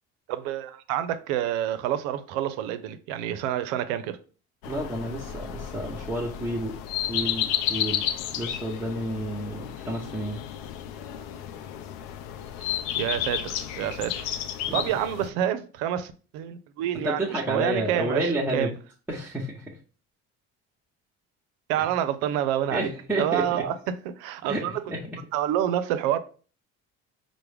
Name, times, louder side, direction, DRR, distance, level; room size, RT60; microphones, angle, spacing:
voice 1, 0.3-4.2 13.0-14.3 14.7-18.7 21.7-22.9 23.2-23.7 24.1-24.8 25.3-26.2, right 11 dB, 85° right, 0.5 m, -28 dB
sound 1, 4.6-15.3, left 10 dB, 80° left, 0.5 m, -32 dB
voice 2, 4.6-6.7 7.0-8.0 8.3-10.4 14.7-14.9 17.0-18.7 19.1-19.6 21.8-21.9 22.7-23.6 24.5-24.6 24.9-25.2, right 1 dB, 5° right, 0.8 m, -30 dB
4.5 x 2.1 x 3.3 m
supercardioid pair, 80°, 32 cm